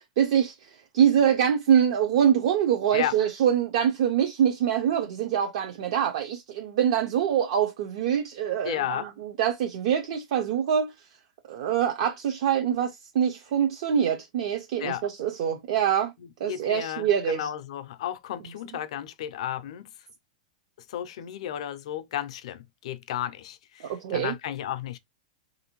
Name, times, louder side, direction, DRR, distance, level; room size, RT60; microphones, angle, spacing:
voice 1, 0.0-10.9 11.5-16.1 16.4-17.5 23.8-24.3, right 9 dB, 50° right, 0.5 m, -24 dB
voice 2, 8.6-9.1 14.8-15.0 16.5-19.9 20.9-25.0, left 11 dB, 60° left, 0.4 m, -33 dB
3.3 x 2.6 x 2.9 m
supercardioid pair, 170°, 4 cm